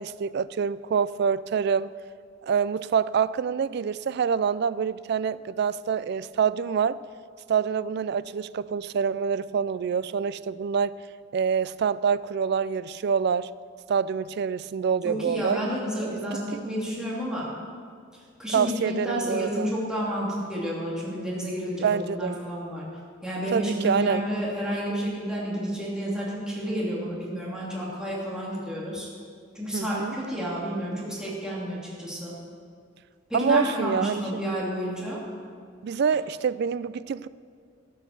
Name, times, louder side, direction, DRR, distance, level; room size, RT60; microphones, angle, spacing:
voice 1, 0.0-1.9 2.4-7.0 7.5-11.0 11.3-13.5 13.9-15.7 16.1-16.2 18.5-19.7 21.8-22.4 23.5-24.2 29.7-30.2 33.3-34.4 35.8-37.3, right 6 dB, 60° right, 0.3 m, -26 dB
voice 2, 15.0-17.5 18.4-22.9 23.2-29.1 29.5-32.3 33.3-35.2, equal, 5° right, 2.6 m, -30 dB
13.5 x 8.1 x 6.8 m
head